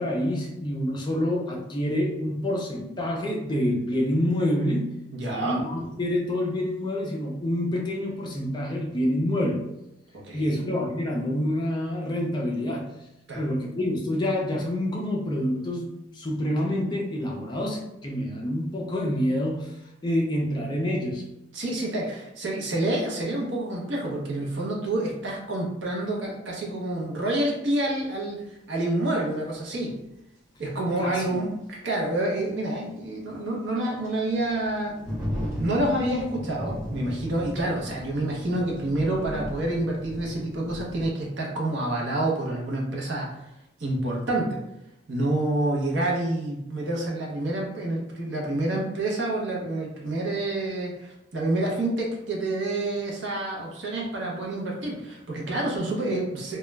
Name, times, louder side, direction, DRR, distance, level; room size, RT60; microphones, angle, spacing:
voice 1, 0.0-4.9 5.3-9.6 10.3-12.9 13.3-19.8 20.0-21.2 31.0-31.4, left 1 dB, 20° left, -1 dB, 0.4 m, -27 dB
voice 2, 5.1-5.6 10.1-10.6 13.3-13.4 21.5-28.4 28.7-30.0 30.6-35.0 35.6-43.4 43.8-44.6 45.1-56.6, right 1 dB, 65° right, -2 dB, 0.7 m, -28 dB
sound 1, 28.1-28.2 30.7-30.8 31.2-31.3 32.9-41.1, equal, 35° right, 1.0 m, -36 dB
2.2 x 2.0 x 3.3 m, 0.86 s
head